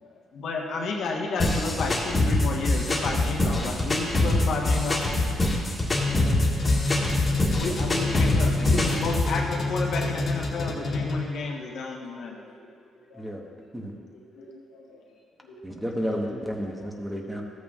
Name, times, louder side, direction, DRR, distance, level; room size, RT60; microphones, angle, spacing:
voice 1, 0.3-5.1 7.5-12.4, left 3 dB, 70° left, 0 dB, 1.1 m, -31 dB
sound 1, 1.4-9.4, left 2 dB, 25° left, 1.7 m, -24 dB
sound 2, 5.9-11.4, left 3 dB, 50° left, 1.6 m, -28 dB
voice 2, 10.2-11.1 11.6-12.5 13.1-13.3 14.1-15.1 15.4-16.4 16.7-16.8, left 1 dB, 90° left, -3 dB, 1.5 m, -48 dB
voice 3, 15.6-17.4, equal, 10° right, 0 dB, 1.1 m, -32 dB
13.5 x 8.3 x 2.4 m, 2.2 s
cardioid pair, 90°, 0 cm